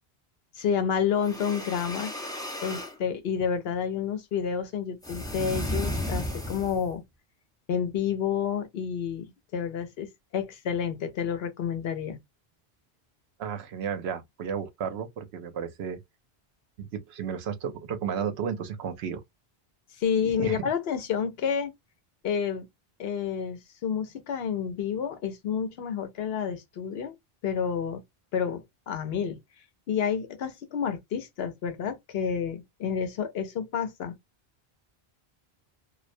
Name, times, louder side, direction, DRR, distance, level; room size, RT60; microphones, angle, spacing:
voice 1, 0.5-2.1 2.6-7.0 7.7-12.2 20.0-21.7 22.2-22.7 23.0-27.1 27.4-28.0 28.3-29.4 29.9-34.2, left 7 dB, 70° left, 0.9 m, -29 dB
sound 1, 1.1-3.0 5.0-6.9, left 1 dB, 5° left, 0.5 m, -33 dB
voice 2, 13.4-16.0 16.8-19.2 20.2-20.7, right 7 dB, 85° right, 0.9 m, -33 dB
2.3 x 2.1 x 2.5 m
omnidirectional pair, 1.1 m